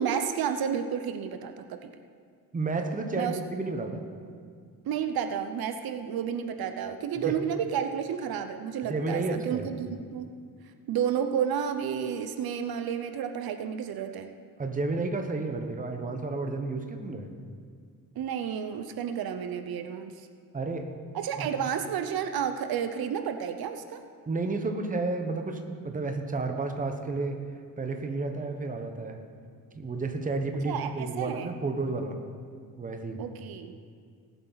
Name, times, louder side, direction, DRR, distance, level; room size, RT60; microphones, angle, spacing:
voice 1, 0.0-1.9 3.2-3.4 4.8-9.7 10.1-10.3 10.9-14.3 18.2-20.1 21.1-24.0 30.7-31.5 33.2-33.7, right 8 dB, 75° right, 8 dB, 0.8 m, -31 dB
voice 2, 2.5-4.0 7.2-7.3 8.8-9.7 14.6-17.3 20.5-20.9 21.4-21.5 24.3-27.4 27.8-29.2 29.7-32.2 32.8-33.2, right 3 dB, 20° right, 5 dB, 1.0 m, -31 dB
19.0 x 8.1 x 4.0 m, 2.1 s
cardioid pair, 135°, 36 cm